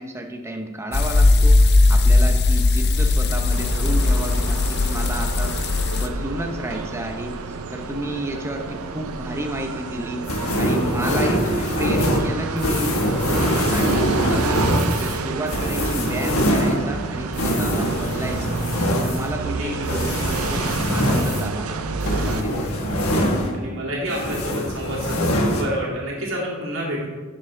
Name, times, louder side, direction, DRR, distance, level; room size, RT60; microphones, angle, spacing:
voice 1, 0.0-5.6 5.9-12.9 13.3-14.6 15.0-18.6 19.0-20.6 20.9-21.7 22.2-22.7, right 1 dB, 10° right, 3 dB, 0.7 m, -31 dB
sound 1, 0.9-6.1, left 2 dB, 50° left, 0.6 m, -18 dB
sound 2, 3.5-22.4, right 4 dB, 85° right, 0.5 m, -30 dB
sound 3, 10.3-23.8 24.1-25.6, equal, 90° left, 1.3 m, -23 dB
voice 2, 19.4-20.0 23.5-27.1, equal, 65° right, -4 dB, 2.5 m, -29 dB
10.5 x 6.4 x 3.3 m, 1.4 s
head